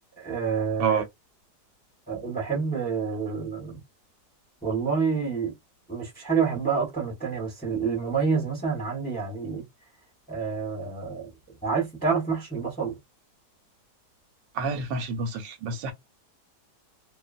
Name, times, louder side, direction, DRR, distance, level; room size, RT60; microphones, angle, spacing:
voice 1, 0.2-1.0 2.1-3.8 4.6-5.5 5.9-9.6 10.3-11.3 11.6-12.9, right 5 dB, 5° left, 0.8 m, -28 dB
voice 2, 14.5-15.9, right 4 dB, 90° right, 1.4 m, -28 dB
2.7 x 2.5 x 2.4 m
omnidirectional pair, 1.9 m